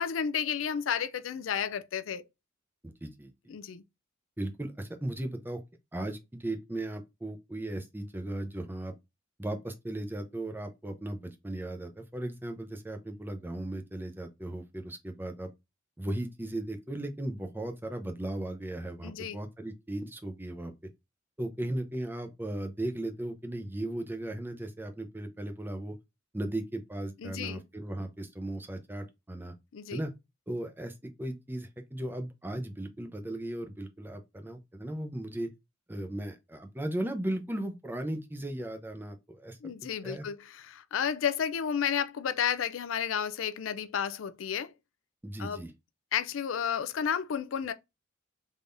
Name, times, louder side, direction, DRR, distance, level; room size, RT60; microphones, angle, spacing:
voice 1, 0.0-2.2 3.5-3.8 19.0-19.4 27.2-27.6 29.7-30.0 39.6-44.7 45.4-45.6 46.1-47.7, left 8 dB, 90° left, 0.4 m, -32 dB
voice 2, 2.8-3.5 4.4-5.6 5.9-8.9 9.4-15.5 16.0-20.7 21.4-26.0 26.3-29.5 29.9-30.1 30.5-35.5 35.9-39.6 40.0-40.3 45.2-45.7, right 1 dB, 10° right, 0.6 m, -36 dB
3.6 x 3.3 x 2.5 m
head